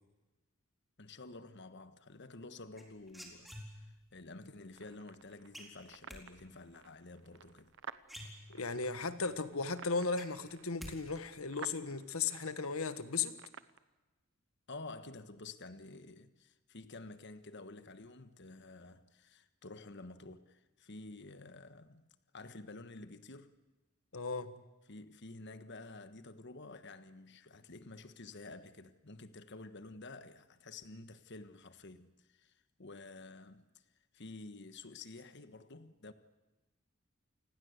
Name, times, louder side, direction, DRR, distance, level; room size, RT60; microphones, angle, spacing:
voice 1, 1.0-7.8 14.7-23.6 24.9-33.6 34.1-36.1, left 2 dB, 55° left, 1.4 m, -50 dB
sound 1, 2.8-4.1 5.5-6.2 7.6-7.7 8.0-8.9 9.3-9.4 9.7-11.0 11.2-11.7, equal, ahead, 4.3 m, -49 dB
sound 2, 4.7-13.8, right 6 dB, 60° right, 1.0 m, -54 dB
voice 2, 8.5-13.3 24.1-24.6, left 4 dB, 85° left, 1.6 m, -36 dB
28.5 x 20.0 x 8.2 m
head